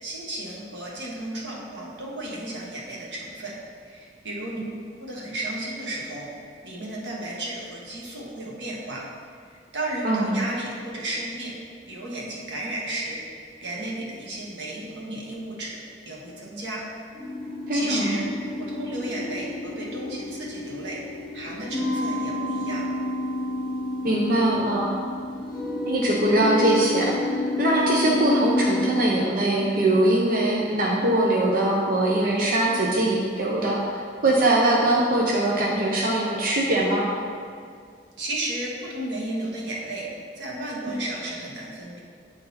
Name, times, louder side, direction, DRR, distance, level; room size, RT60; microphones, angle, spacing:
voice 1, 0.0-3.6 3.9-4.6 5.0-9.0 9.7-11.5 11.9-13.2 13.6-15.8 16.1-16.8 17.7-18.3 18.6-22.8 28.0-28.2 38.2-42.0, right 1 dB, 90° right, -3 dB, 1.5 m, -33 dB
voice 2, 10.0-10.4 17.7-18.3 24.0-25.0 25.9-27.1 27.6-37.1 40.9-41.0, right 1 dB, 55° right, -3 dB, 0.7 m, -22 dB
sound 1, 17.1-29.0, left 1 dB, ahead, 1.2 m, -30 dB
9.1 x 3.9 x 4.3 m, 2.2 s
head